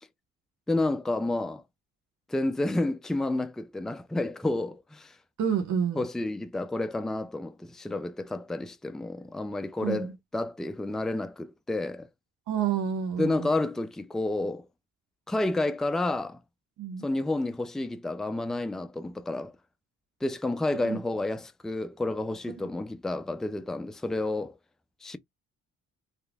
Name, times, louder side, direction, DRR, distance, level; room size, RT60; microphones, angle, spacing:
voice 1, 0.7-1.6 2.3-5.1 6.0-12.1 13.2-14.7 15.3-16.4 17.0-19.5 20.2-24.5 25.0-25.2, left 2 dB, ahead, 0.4 m, -30 dB
voice 2, 5.4-6.0 9.8-10.1 12.5-13.6 16.8-17.1 20.8-21.0, right 8 dB, 70° right, 1.1 m, -29 dB
3.6 x 3.3 x 2.3 m
cardioid pair, 90°, 30 cm